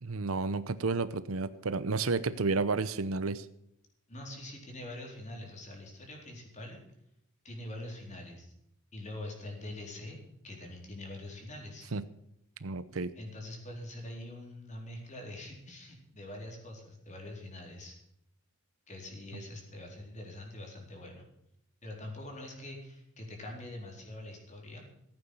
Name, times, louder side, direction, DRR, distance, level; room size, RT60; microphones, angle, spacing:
voice 1, 0.0-3.5 11.9-12.0 12.6-13.1, right 3 dB, 75° right, 15 dB, 0.8 m, -31 dB
voice 2, 4.1-6.8 7.4-8.5 8.9-10.2 10.4-11.9 13.2-18.0 18.9-21.2 21.8-24.9, left 1 dB, 35° left, 1 dB, 4.1 m, -44 dB
15.5 x 8.9 x 7.2 m, 0.77 s
head